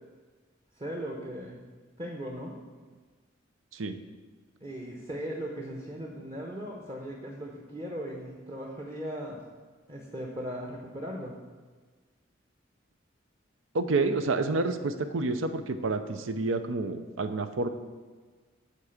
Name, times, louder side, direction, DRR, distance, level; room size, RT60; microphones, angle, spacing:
voice 1, 0.8-1.6 2.0-2.6 4.6-9.4 9.9-11.3, equal, 25° right, -1 dB, 0.9 m, -38 dB
voice 2, 13.7-17.7, right 3 dB, 80° right, 9 dB, 0.6 m, -29 dB
8.3 x 4.7 x 7.1 m, 1.4 s
head